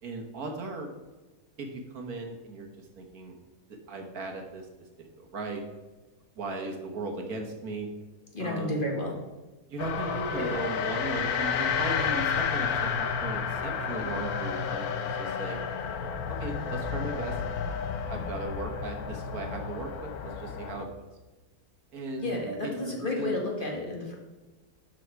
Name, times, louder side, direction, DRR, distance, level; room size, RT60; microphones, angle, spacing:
voice 1, 0.0-0.9 1.6-3.4 3.7-4.7 5.0-5.6 6.4-7.9 8.4-8.8 9.7-15.6 16.3-17.4 17.7-21.1 21.9-22.3 22.6-23.3, right 2 dB, 70° right, 3 dB, 1.8 m, -37 dB
voice 2, 8.3-9.2 10.3-10.6 22.2-24.1, left 2 dB, 35° left, -1 dB, 1.7 m, -31 dB
sound 1, 9.8-20.8, left 6 dB, 75° left, 1.3 m, -31 dB
11.5 x 4.7 x 4.6 m, 1.2 s
omnidirectional pair, 1.7 m